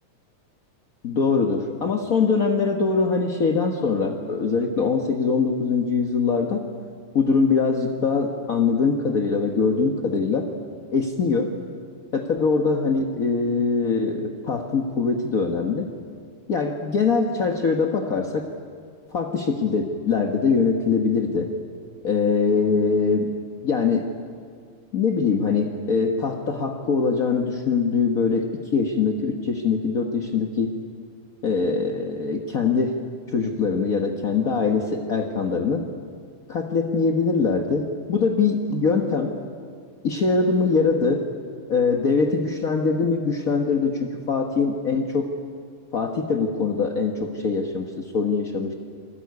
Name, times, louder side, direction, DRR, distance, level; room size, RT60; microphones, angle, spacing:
voice 1, 1.0-6.6 7.1-10.5 10.9-11.5 12.1-15.9 16.5-18.5 19.1-21.5 22.0-23.3 23.6-24.1 24.9-30.8 31.4-33.0 33.3-35.8 36.5-39.4 40.0-41.3 41.7-45.3 45.9-48.7, left 4 dB, 45° left, 2 dB, 1.1 m, -23 dB
29.0 x 21.5 x 9.6 m, 2.1 s
omnidirectional pair, 3.5 m